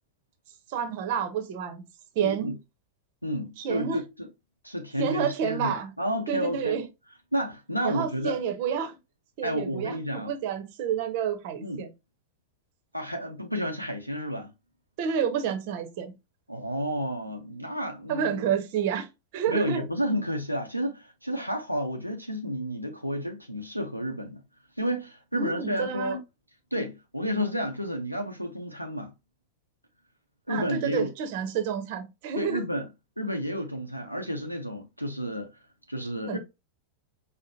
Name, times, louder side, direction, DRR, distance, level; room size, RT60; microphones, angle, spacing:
voice 1, 0.7-1.8 2.1-2.5 3.6-4.0 5.0-5.9 6.3-6.8 7.8-9.0 9.4-11.9 15.0-16.1 18.1-19.1 19.3-19.8 25.3-26.2 30.5-32.6 36.3-36.4, right 7 dB, 50° right, 0.8 m, -29 dB
voice 2, 2.2-2.6 3.2-4.3 4.6-6.8 7.3-8.4 9.4-10.3 11.6-11.9 12.9-14.5 16.5-18.5 19.5-24.4 24.8-26.2 26.7-29.1 30.5-31.1 32.3-32.9 33.2-35.5 35.9-36.4, equal, 90° right, 0.5 m, -31 dB
4.9 x 2.1 x 2.6 m
figure-of-eight pair, 90°, 0 cm